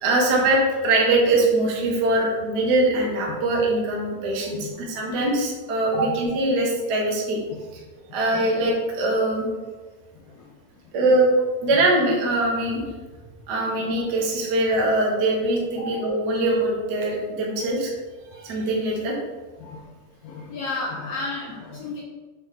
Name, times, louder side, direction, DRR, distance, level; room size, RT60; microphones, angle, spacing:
voice 1, 0.0-7.4 8.1-9.5 10.9-11.3 11.6-12.8 13.5-17.9 18.3-19.2, right 2 dB, 90° right, -2 dB, 0.9 m, -22 dB
voice 2, 8.1-8.4 13.6-13.7 15.8-15.9 18.3-18.4 19.6-19.9 20.2-22.0, left 3 dB, 75° left, -3 dB, 1.8 m, -33 dB
6.9 x 4.0 x 3.5 m, 1.3 s
omnidirectional pair, 3.7 m